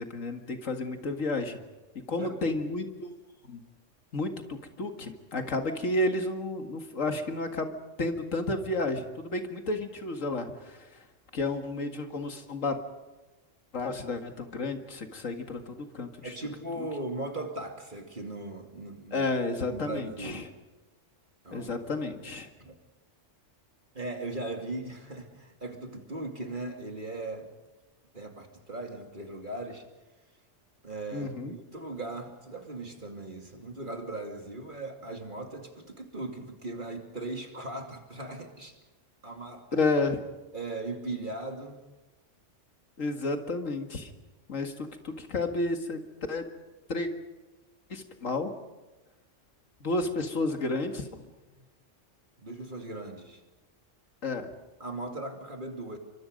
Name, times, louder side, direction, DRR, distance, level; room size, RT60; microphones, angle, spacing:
voice 1, 0.0-1.6 2.1-3.1 3.5-3.6 4.1-11.0 11.3-12.8 13.7-16.3 16.8-16.9 19.1-20.4 21.5-22.5 31.1-31.5 39.7-40.2 43.0-44.1 44.5-46.0 46.3-46.4 46.9-47.1 47.9-48.5 49.8-51.2 54.2-54.5, left 2 dB, 90° left, 5 dB, 2.3 m, -31 dB
voice 2, 2.2-2.6 16.2-19.3 19.7-20.5 21.4-21.7 22.6-22.7 23.9-27.5 28.1-29.9 30.8-38.8 39.2-39.7 40.5-41.8 51.5-51.6 52.4-53.4 54.8-56.0, right 2 dB, 40° right, 3 dB, 2.8 m, -38 dB
28.0 x 24.5 x 5.3 m, 1.1 s
omnidirectional pair, 1.3 m